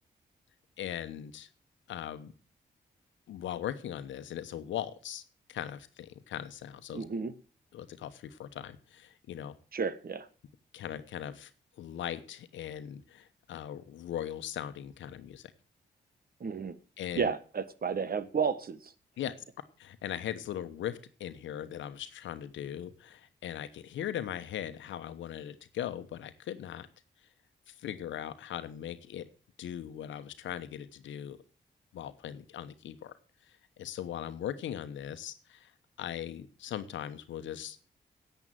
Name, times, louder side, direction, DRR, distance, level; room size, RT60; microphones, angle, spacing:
voice 1, 0.8-1.5 1.9-2.3 3.3-5.2 5.5-7.0 7.7-9.5 10.7-11.5 11.8-15.5 17.0-17.3 19.2-19.4 19.8-26.9 27.7-29.2 29.6-31.4 31.9-33.1 33.8-35.7 36.0-37.8, left 10 dB, 85° left, 11 dB, 1.1 m, -39 dB
voice 2, 6.9-7.3 9.7-10.3 16.4-16.8 17.1-18.9, right 6 dB, 50° right, 15 dB, 1.3 m, -32 dB
11.0 x 8.1 x 7.6 m, 0.40 s
supercardioid pair, 45°, 19 cm